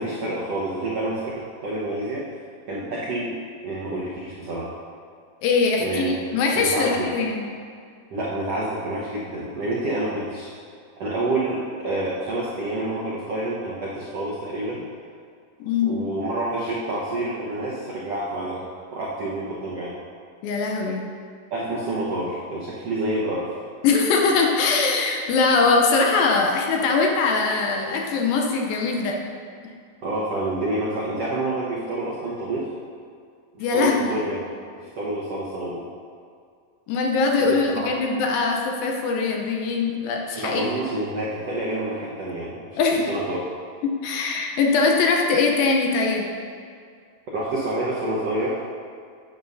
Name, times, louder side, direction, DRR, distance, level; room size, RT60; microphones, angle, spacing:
voice 1, 0.0-2.2 2.7-3.4 3.6-4.7 5.8-6.1 6.5-7.1 8.1-10.5 11.0-14.8 15.9-18.6 18.9-19.9 21.5-23.5 30.0-32.6 33.7-34.4 34.8-35.8 37.4-37.6 40.4-42.8 43.1-43.4 47.3-48.6, right 1 dB, 90° right, -7 dB, 1.3 m, -28 dB
voice 2, 5.4-7.5 15.6-16.0 20.4-21.0 23.8-29.2 33.6-34.3 36.9-40.7 42.8-43.1 43.8-46.3, left 4 dB, 75° left, 1 dB, 2.3 m, -22 dB
11.0 x 8.8 x 2.7 m, 2.2 s
omnidirectional pair, 4.5 m